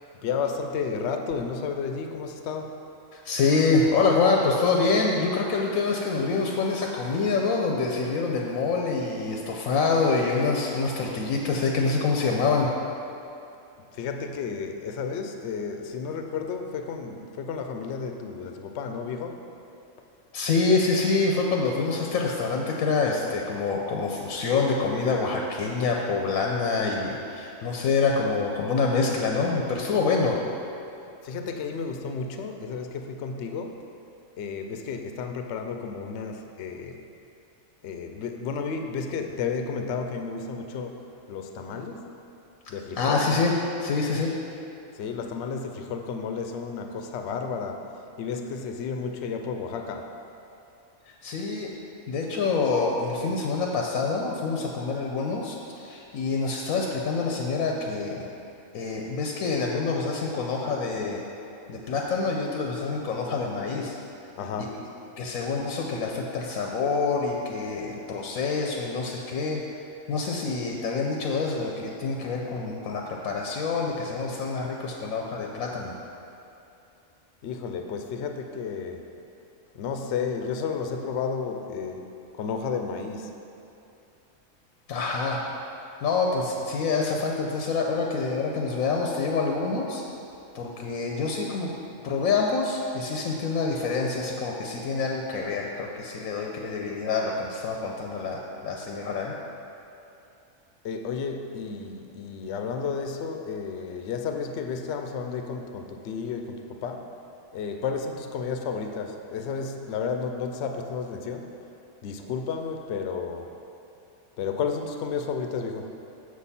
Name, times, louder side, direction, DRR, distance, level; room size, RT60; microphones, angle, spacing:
voice 1, 0.1-2.8 13.9-19.4 31.2-33.8 34.4-37.0 37.8-42.1 42.7-43.3 44.9-50.1 64.4-64.8 77.4-79.1 79.7-82.1 82.4-83.3 100.8-107.1 107.5-111.6 112.0-113.5 114.4-116.0, left 5 dB, 65° left, 5 dB, 0.8 m, -32 dB
voice 2, 3.1-12.7 20.3-30.4 43.0-43.5 43.8-44.4 51.1-51.8 52.1-58.3 58.7-61.2 61.7-64.0 64.6-64.7 65.2-69.7 70.1-75.9 84.9-85.4 86.0-90.0 90.5-99.3, left 4 dB, 90° left, 0 dB, 1.1 m, -26 dB
7.5 x 6.4 x 4.1 m, 2.7 s
omnidirectional pair, 1.4 m